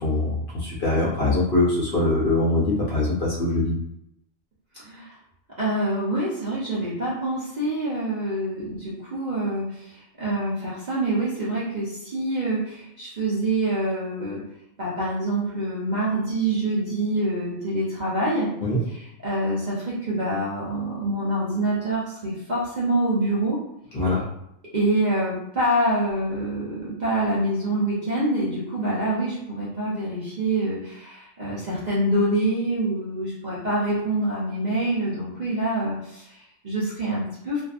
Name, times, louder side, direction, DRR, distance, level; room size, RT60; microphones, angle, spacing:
voice 1, 0.0-3.8 18.6-18.8 23.9-24.2, left 2 dB, 50° left, -6 dB, 0.7 m, -23 dB
voice 2, 4.8-5.1 5.6-14.4 14.8-18.5 18.9-23.6 24.7-37.6, right 1 dB, 45° right, -8 dB, 0.6 m, -26 dB
2.5 x 2.3 x 2.4 m, 0.80 s
omnidirectional pair, 1.4 m